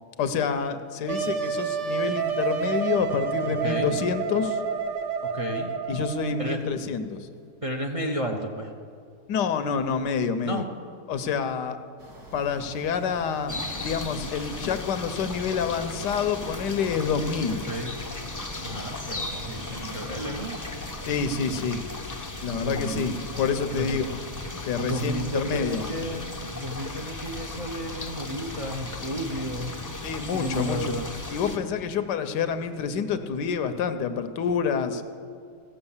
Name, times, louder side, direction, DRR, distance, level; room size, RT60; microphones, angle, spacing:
voice 1, 0.2-4.6 5.9-7.3 9.3-10.6 11.1-11.8 12.3-17.6 21.0-21.8 22.4-24.2 24.6-25.8 30.0-30.9 31.3-35.0, left 6 dB, 85° left, 10 dB, 1.4 m, -28 dB
Wind instrument woodwind instrument, 1.1-6.6, right 6 dB, 85° right, 1.6 m, -29 dB
voice 2, 3.6-3.9 5.2-5.7 6.4-6.6 7.6-8.7 10.4-10.6 17.7-17.9 18.6-20.6 22.6-23.3 23.8-24.0 24.8-29.7 30.3-31.1, equal, 30° right, 4 dB, 0.6 m, -32 dB
sound 1, 12.0-21.4, right 2 dB, 65° right, 2.6 m, -45 dB
sound 2, 13.5-31.6, left 2 dB, 25° left, 0.4 m, -36 dB
17.0 x 7.3 x 7.2 m, 2.3 s
omnidirectional pair, 1.8 m